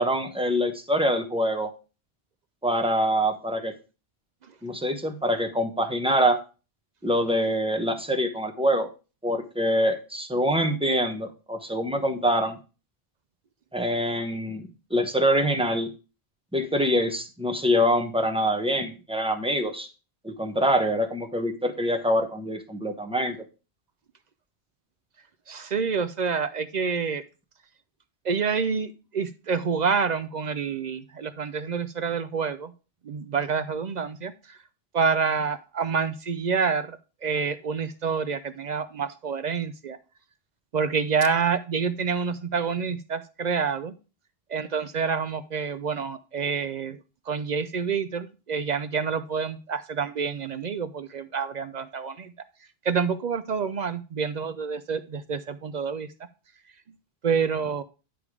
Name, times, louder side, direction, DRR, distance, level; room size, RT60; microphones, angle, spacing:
voice 1, 0.0-1.7 2.6-3.7 4.6-6.4 7.0-8.9 9.2-12.6 13.7-15.9 16.5-19.9 20.2-23.4, equal, 5° right, 5 dB, 0.8 m, -25 dB
voice 2, 25.5-27.2 28.2-32.7 33.0-34.6 34.9-40.0 40.7-43.9 44.5-47.0 47.3-52.3 52.8-56.1 57.2-57.8, right 5 dB, 55° right, 12 dB, 0.5 m, -28 dB
10.0 x 3.5 x 4.8 m, 0.33 s
omnidirectional pair, 1.1 m